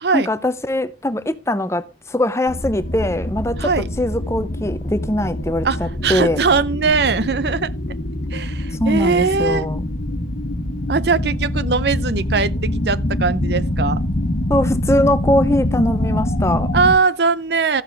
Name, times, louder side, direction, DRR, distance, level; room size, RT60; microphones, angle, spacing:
voice 1, 0.1-3.7 4.0-6.4 8.8-9.8 14.5-16.7, left 1 dB, 15° left, 0.7 m, -21 dB
sound 1, 2.5-16.9, left 1 dB, 80° left, 1.3 m, -24 dB
voice 2, 5.6-7.7 8.3-9.7 10.9-14.0 16.7-17.8, right 4 dB, 70° right, 0.6 m, -20 dB
14.0 x 7.3 x 3.4 m
head